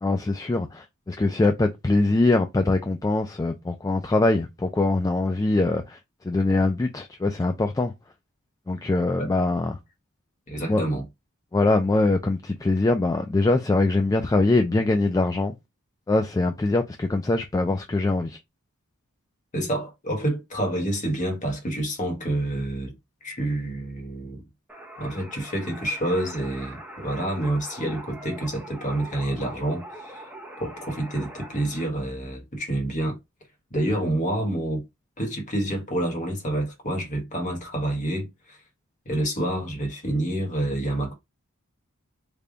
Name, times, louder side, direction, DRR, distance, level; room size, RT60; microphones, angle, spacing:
voice 1, 0.0-6.0 6.2-7.9 8.7-9.8 10.7-10.8 11.5-15.5 16.1-18.4, left 2 dB, 15° left, 0.3 m, -23 dB
voice 2, 10.5-11.0 19.5-22.9 23.2-24.4 25.0-30.2 30.6-33.2 33.7-34.8 35.2-38.6 39.0-41.1, right 1 dB, 35° left, 1.3 m, -28 dB
sound 1, 24.7-31.9, right 1 dB, 10° right, 0.8 m, -42 dB
3.4 x 2.2 x 3.8 m
head